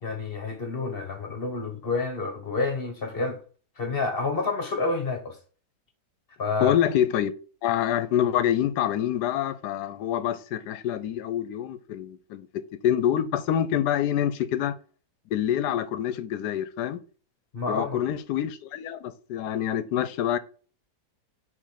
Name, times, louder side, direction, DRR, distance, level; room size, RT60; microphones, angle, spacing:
voice 1, 0.0-3.4 3.8-5.4 6.4-6.7 17.5-18.0, left 3 dB, 35° left, 1.3 m, -29 dB
voice 2, 6.6-7.3 7.6-14.8 15.3-17.0 17.7-20.4, left 10 dB, 75° left, 1.2 m, -26 dB
5.2 x 3.9 x 5.7 m
omnidirectional pair, 1.9 m